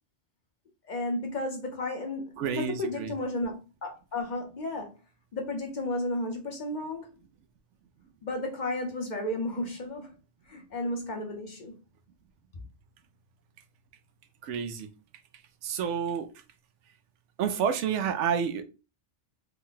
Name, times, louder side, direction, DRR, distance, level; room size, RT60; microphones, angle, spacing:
voice 1, 0.8-4.9 5.3-7.1 8.2-10.1 10.5-11.7, left 1 dB, 45° left, 0.8 m, -33 dB
voice 2, 2.4-3.1 14.4-14.9 15.6-16.3 17.4-18.6, right 7 dB, 90° right, 0.9 m, -29 dB
3.5 x 2.1 x 3.7 m
omnidirectional pair, 1.2 m